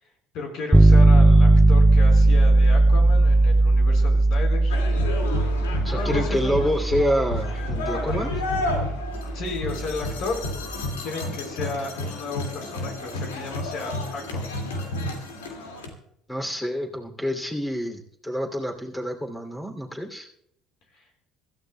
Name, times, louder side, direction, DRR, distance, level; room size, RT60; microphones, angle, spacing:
voice 1, 0.3-4.8 5.2-5.4 5.7-6.8 7.9-8.2 9.3-10.4 11.0-14.5 20.9-21.0, left 3 dB, 60° left, 2 dB, 4.6 m, -34 dB
sound 1, 0.7-10.6, right 2 dB, 5° right, 0.5 m, -18 dB
sound 2, 4.7-15.9, left 2 dB, 85° left, 2.3 m, -31 dB
voice 2, 5.8-8.3 16.3-20.3, equal, 10° left, 1 dB, 3.0 m, -27 dB
25.5 x 13.5 x 2.3 m, 0.74 s
hypercardioid pair, 65°, 0 cm